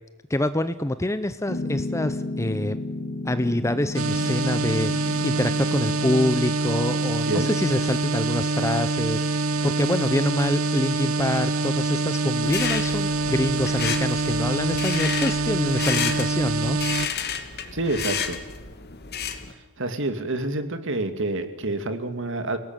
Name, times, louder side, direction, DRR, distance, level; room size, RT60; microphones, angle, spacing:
voice 1, 0.3-2.8 3.2-16.8, left 1 dB, 15° left, 12 dB, 0.7 m, -26 dB
Piano, 1.5-6.6, left 2 dB, 80° left, 3.0 m, -33 dB
sound 1, 3.9-17.1, right 3 dB, 80° right, 1.1 m, -25 dB
voice 2, 7.2-7.5 17.7-18.4 19.8-22.6, right 2 dB, 65° right, 9 dB, 2.6 m, -28 dB
sound 2, 12.4-19.5, left 7 dB, 50° left, 2.6 m, -31 dB
29.0 x 18.5 x 9.1 m, 1.2 s
head